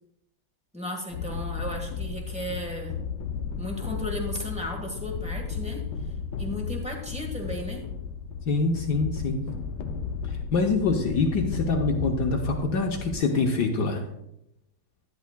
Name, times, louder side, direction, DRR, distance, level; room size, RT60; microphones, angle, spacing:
voice 1, 0.7-3.0 3.6-5.9 6.4-7.9, left 1 dB, 5° right, 1 dB, 1.0 m, -35 dB
sound 1, 1.1-13.2, left 6 dB, 75° left, 1.5 m, -34 dB
voice 2, 8.5-9.5 10.3-14.1, left 3 dB, 60° left, 2 dB, 1.2 m, -25 dB
11.5 x 10.5 x 2.2 m, 0.82 s
omnidirectional pair, 2.4 m